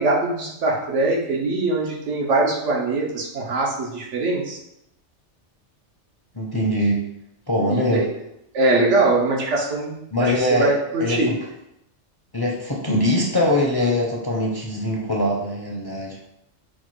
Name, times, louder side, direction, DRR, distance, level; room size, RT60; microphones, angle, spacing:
voice 1, 0.0-4.6 7.7-8.1 8.5-11.3, right 2 dB, 90° right, -2 dB, 1.2 m, -22 dB
voice 2, 6.3-7.0 7.5-8.0 10.1-10.7 11.0-11.2 12.3-16.2, left 1 dB, 30° left, -3 dB, 0.4 m, -22 dB
4.3 x 2.3 x 4.6 m, 0.82 s
omnidirectional pair, 1.2 m